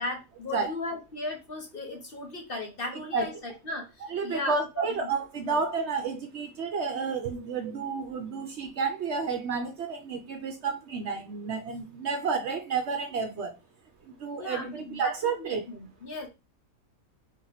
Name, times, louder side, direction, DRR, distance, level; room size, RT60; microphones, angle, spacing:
voice 1, 0.0-5.1 5.4-5.6 14.4-16.3, left 2 dB, 45° left, 0.9 m, -37 dB
voice 2, 2.9-3.3 4.1-13.5 14.0-15.7, right 5 dB, 60° right, 0.8 m, -31 dB
3.6 x 2.8 x 3.9 m
omnidirectional pair, 1.5 m